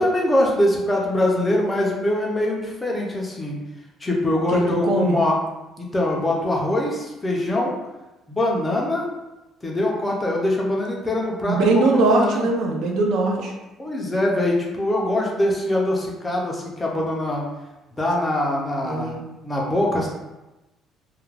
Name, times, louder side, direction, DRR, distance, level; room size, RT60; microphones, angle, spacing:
voice 1, 0.0-3.6 4.0-5.4 5.8-7.8 8.3-9.0 9.6-12.5 13.8-17.4 18.0-19.2 19.4-20.1, left 1 dB, 10° left, -2 dB, 0.4 m, -23 dB
voice 2, 4.5-5.2 11.4-13.5 18.8-19.2, right 2 dB, 60° right, 1 dB, 0.4 m, -21 dB
2.4 x 2.1 x 3.2 m, 1.0 s
cardioid pair, 170°, 0 cm